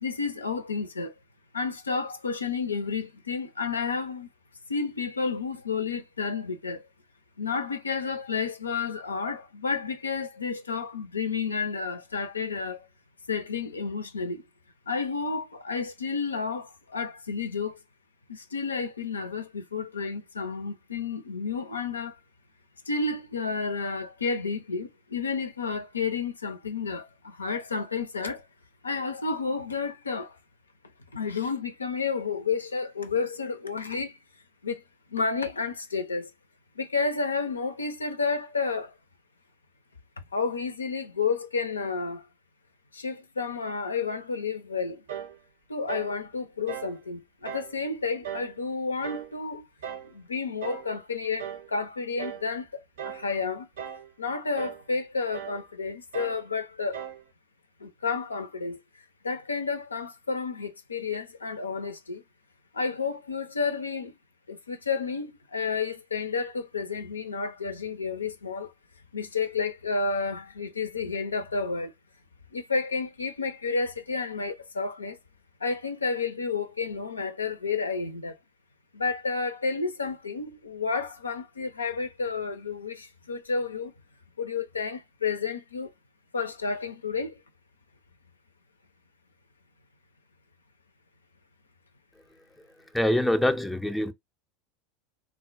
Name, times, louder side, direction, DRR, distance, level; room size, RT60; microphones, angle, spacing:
voice 1, 0.0-1.1 1.5-4.3 4.7-6.9 7.4-12.9 13.3-14.4 14.9-17.8 18.3-22.2 22.9-28.5 28.8-30.4 31.1-34.2 34.6-34.8 35.1-36.3 36.8-39.0 40.3-42.3 42.9-45.0 45.7-49.7 50.0-53.7 54.2-57.0 57.8-58.8 59.2-62.2 62.7-64.1 64.5-68.7 69.1-71.9 72.5-75.2 75.6-78.4 78.9-83.9 84.4-85.9 86.3-87.4, left 4 dB, 80° left, 0.4 m, -31 dB
sound 1, 45.1-45.4 45.9-46.2 46.7-47.0 47.5-47.7 48.2-48.6 49.0-49.3 49.8-50.1 50.6-50.9 51.4-51.7 52.2-52.5 53.0-53.3 53.8-54.1 54.6-54.8 55.3-55.6 56.1-56.4 56.9-57.2, right 9 dB, 65° right, 0.6 m, -38 dB
voice 2, 92.5-94.1, left 1 dB, 5° left, 0.5 m, -26 dB
3.7 x 2.1 x 2.4 m
figure-of-eight pair, 80°, 0 cm